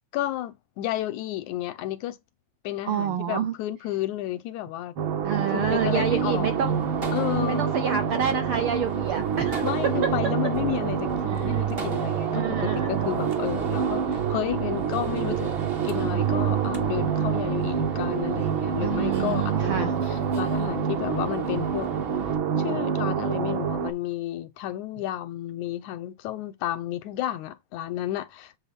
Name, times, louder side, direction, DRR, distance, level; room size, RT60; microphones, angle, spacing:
voice 1, 0.1-2.2 2.6-4.9 5.5-6.5 7.1-7.7 9.6-15.6 15.8-21.9 22.6-28.6, left 13 dB, 80° left, 2.2 m, -32 dB
voice 2, 2.9-3.5 5.2-6.8 7.5-9.7 11.3-11.6 12.3-13.1 18.8-20.0, right 8 dB, 75° right, 1.2 m, -28 dB
sound 1, 5.0-23.9, right 7 dB, 60° right, 1.5 m, -27 dB
Gunshot gunfire, 5.3-22.4, right 3 dB, 45° right, 0.7 m, -38 dB
7.8 x 4.0 x 5.8 m
omnidirectional pair, 3.4 m